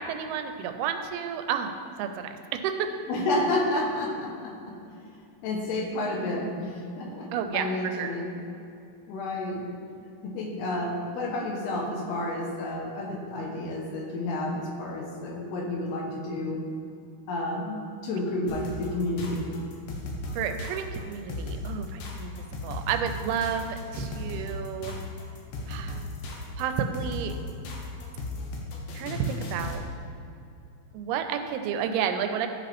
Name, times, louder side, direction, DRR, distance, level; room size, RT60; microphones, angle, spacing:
voice 1, 0.0-1.7 2.0-2.3 2.6-2.9 7.3-8.1 20.3-22.3 22.6-25.0 25.7-26.0 26.6-27.3 28.9-29.8 30.9-32.5, right 8 dB, 85° right, 7 dB, 2.5 m, -31 dB
voice 2, 3.1-4.8 5.4-8.3 9.1-9.7 10.2-16.6 17.3-19.5, left 1 dB, 90° left, 0 dB, 3.2 m, -30 dB
sound 1, 18.5-29.9, left 2 dB, 70° left, 2.5 m, -36 dB
13.5 x 5.1 x 3.4 m, 2.7 s
omnidirectional pair, 4.5 m